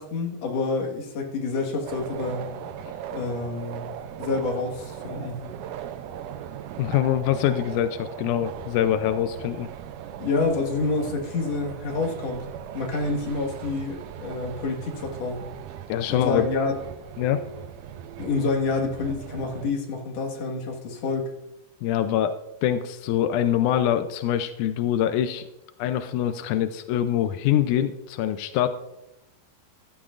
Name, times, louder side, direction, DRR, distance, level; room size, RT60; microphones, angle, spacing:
voice 1, 0.0-2.5 3.1-3.8 4.2-5.4 10.2-12.5 12.7-15.5 16.1-16.7 18.2-21.3, left 3 dB, 55° left, 1 dB, 2.4 m, -28 dB
sound 1, 1.9-19.7, right 9 dB, 80° right, 2.0 m, -39 dB
voice 2, 6.8-9.7 15.9-16.5 17.2-17.4 21.8-22.3 22.6-25.4 25.8-28.7, left 11 dB, 85° left, 9 dB, 1.7 m, -24 dB
15.5 x 12.0 x 2.5 m, 0.91 s
omnidirectional pair, 4.2 m